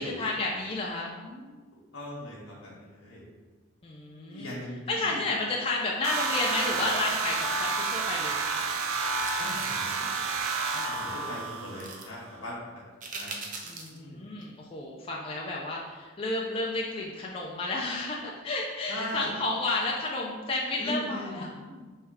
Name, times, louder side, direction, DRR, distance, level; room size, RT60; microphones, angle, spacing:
voice 1, 0.0-1.6 3.8-4.5 4.9-8.4 13.6-21.9, left 2 dB, 25° left, -2 dB, 0.4 m, -32 dB
voice 2, 1.9-3.2 4.3-5.2 9.4-10.2 10.7-12.8 13.1-13.3 13.9-14.2 18.9-19.3 20.8-21.4, left 1 dB, 85° left, -6 dB, 1.1 m, -39 dB
sound 1, 6.0-12.2, right 4 dB, 85° right, 0.5 m, -30 dB
sound 2, 9.2-9.8 11.8-12.1 13.0-14.0 14.4-14.5, right 3 dB, 40° right, 0.5 m, -40 dB
3.5 x 3.1 x 4.7 m, 1.3 s
head